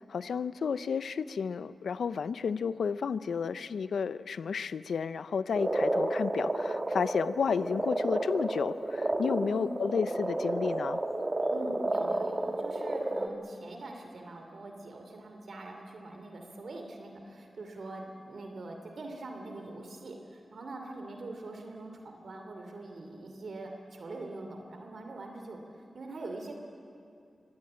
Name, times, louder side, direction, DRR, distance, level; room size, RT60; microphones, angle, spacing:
voice 1, 0.1-11.0, left 6 dB, 90° left, 15 dB, 0.5 m, -32 dB
Frog, 5.5-13.3, right 1 dB, 30° right, 1.5 m, -31 dB
voice 2, 9.4-9.7 11.5-26.5, right 2 dB, 70° right, 3 dB, 2.7 m, -43 dB
24.5 x 18.5 x 8.8 m, 2.5 s
cardioid pair, 65°, 0 cm